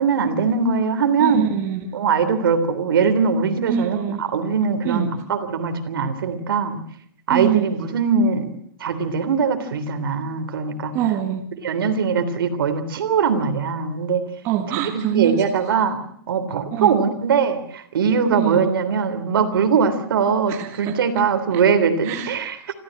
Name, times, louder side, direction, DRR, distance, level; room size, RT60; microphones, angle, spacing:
voice 1, 0.0-1.5 1.9-6.8 7.3-8.5 8.8-11.0 11.6-14.3 14.9-16.0 16.3-22.6, right 6 dB, 70° right, 9 dB, 3.4 m, -21 dB
voice 2, 1.2-2.0 3.7-4.2 4.8-5.2 7.3-7.8 10.9-11.6 14.4-15.8 16.7-17.0 18.3-18.6 20.5-21.0 21.5-21.6 22.0-22.3, right 11 dB, 20° right, 4 dB, 1.8 m, -25 dB
27.0 x 14.5 x 8.9 m, 0.66 s
hypercardioid pair, 175°, 12 cm